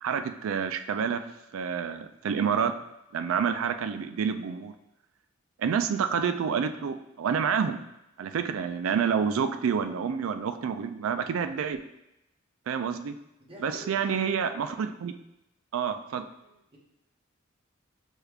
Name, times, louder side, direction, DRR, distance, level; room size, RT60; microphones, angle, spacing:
voice 1, 0.0-1.2 1.5-2.7 3.1-4.7 5.6-7.8 8.2-11.8 12.7-13.1 13.6-15.1 15.7-16.2, right 7 dB, 85° right, 9 dB, 0.3 m, -28 dB
voice 2, 13.4-14.0 16.4-16.8, equal, 30° right, -3 dB, 0.9 m, -47 dB
6.3 x 2.4 x 3.3 m, 0.88 s
head